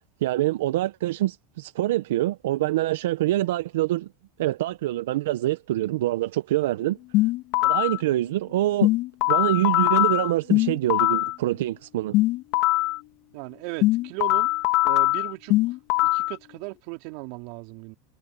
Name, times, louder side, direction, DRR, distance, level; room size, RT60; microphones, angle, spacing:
voice 1, 0.2-4.1 4.4-7.0 7.6-8.9 9.3-12.1, right 15 dB, 80° right, 0.8 m, -25 dB
sound 1, 7.1-8.0 8.8-11.3 12.1-13.0 13.8-16.3, left 19 dB, 55° left, 2.6 m, -22 dB
voice 2, 13.3-14.5 14.8-15.5 16.1-18.0, right 25 dB, 60° right, 4.1 m, -36 dB
supercardioid pair, 120°, 0 cm